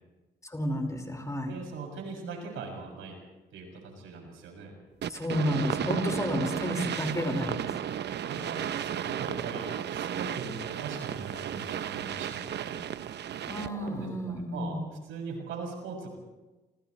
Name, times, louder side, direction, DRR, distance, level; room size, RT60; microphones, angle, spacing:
voice 1, 0.4-1.5 5.1-7.7 13.5-14.8, left 1 dB, 15° left, 2 dB, 5.2 m, -31 dB
voice 2, 1.5-3.2 3.5-4.7 8.1-12.9 13.5-16.1, right 4 dB, 85° right, 1 dB, 7.3 m, -40 dB
sound 1, 5.0-13.9, right 9 dB, 60° right, 0.8 m, -34 dB
28.0 x 28.0 x 3.3 m, 1.2 s
cardioid pair, 90°, 20 cm